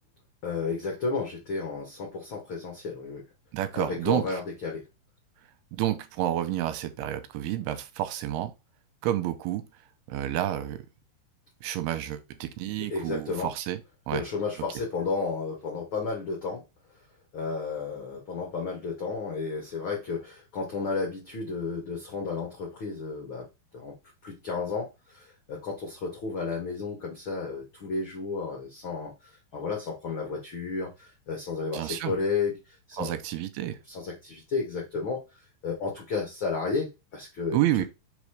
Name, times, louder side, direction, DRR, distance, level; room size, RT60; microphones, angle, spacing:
voice 1, 0.4-3.2 3.7-4.8 12.9-13.5 14.1-16.6 17.3-23.4 23.7-23.9 24.2-33.2 33.9-35.2 35.6-37.6, left 4 dB, 55° left, 1.4 m, -32 dB
voice 2, 3.5-4.4 5.8-8.5 9.0-9.6 10.1-10.8 11.6-13.8 14.1-14.2 31.7-32.1 33.0-33.8 37.5-37.8, right 12 dB, 85° right, 2.7 m, -29 dB
5.3 x 4.2 x 4.9 m
omnidirectional pair, 4.6 m